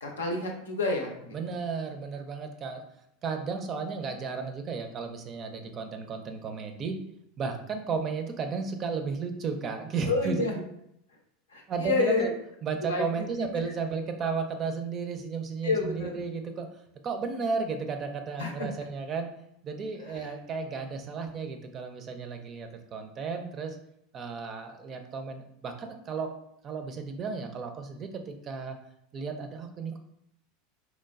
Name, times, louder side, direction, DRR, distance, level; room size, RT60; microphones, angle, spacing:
voice 1, 0.0-1.4 10.1-10.6 11.5-12.3 12.8-13.5 15.6-16.2 18.4-18.7 20.0-20.3, left 3 dB, 85° left, 2 dB, 0.5 m, -29 dB
voice 2, 1.3-2.8 3.2-7.0 7.4-10.3 11.7-12.3 12.6-16.7 17.0-19.3 19.6-23.8 24.1-26.3 26.6-28.8 29.1-30.0, right 5 dB, 35° right, 6 dB, 0.4 m, -34 dB
3.0 x 2.1 x 2.3 m, 0.76 s
hypercardioid pair, 90°, 0 cm